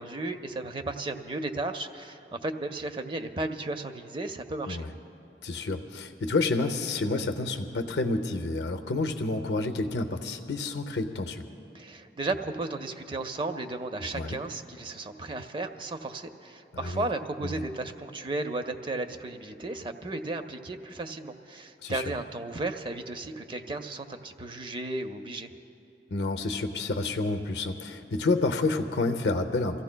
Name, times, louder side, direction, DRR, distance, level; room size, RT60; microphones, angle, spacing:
voice 1, 0.0-4.9 11.7-25.5, right 2 dB, 30° right, 8 dB, 0.5 m, -34 dB
voice 2, 5.4-11.4 14.1-14.4 16.7-17.1 17.4-17.7 21.8-22.0 26.1-29.8, left 3 dB, 75° left, 7 dB, 0.7 m, -29 dB
29.5 x 15.0 x 2.2 m, 2.8 s
head